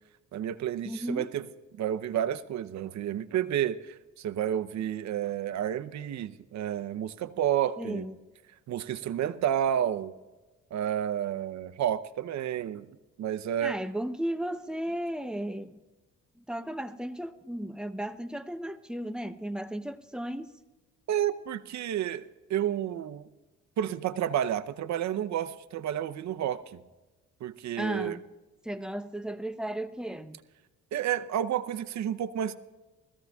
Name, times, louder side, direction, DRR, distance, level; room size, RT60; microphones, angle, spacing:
voice 1, 0.3-1.4 1.8-8.0 8.7-10.1 10.7-12.9 13.2-13.7 21.1-23.3 23.8-26.8 27.4-28.2 30.9-32.6, right 10 dB, 65° right, 0.7 m, -30 dB
voice 2, 0.8-1.3 7.8-8.2 13.6-15.8 16.4-20.5 27.8-28.2 28.6-30.4, right 1 dB, 5° right, 0.7 m, -35 dB
20.5 x 14.5 x 2.3 m
cardioid pair, 90°, 30 cm